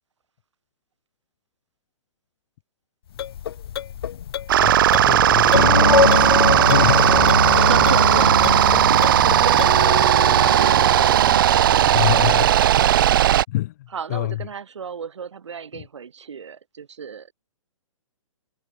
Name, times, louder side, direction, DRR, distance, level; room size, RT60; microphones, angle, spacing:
sound 1, 3.1-10.0, left 10 dB, 45° left, 4.0 m, -33 dB
sound 2, 4.5-13.4, right 11 dB, 40° right, 0.7 m, -16 dB
voice 1, 4.6-6.3 6.7-7.1 8.7-8.8 11.8-12.7 13.5-14.4 15.7-15.8, left 16 dB, 30° left, 0.7 m, -27 dB
sound 3, 5.5-12.9, left 3 dB, 85° left, 0.9 m, -23 dB
voice 2, 7.1-11.0 13.9-17.3, right 6 dB, 60° right, 4.9 m, -33 dB
figure-of-eight pair, 125°, 17 cm